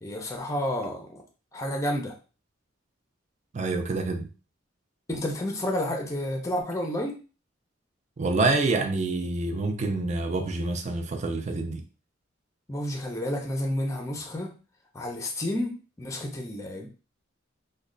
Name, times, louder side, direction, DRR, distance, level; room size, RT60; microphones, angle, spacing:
voice 1, 0.0-1.2 1.5-2.2 5.1-7.2 12.7-14.5 14.9-15.7 16.0-16.9, left 1 dB, 15° left, 0.5 m, -30 dB
voice 2, 3.5-4.3 8.2-11.8, right 3 dB, 35° right, 0.4 m, -27 dB
3.1 x 2.2 x 3.7 m
head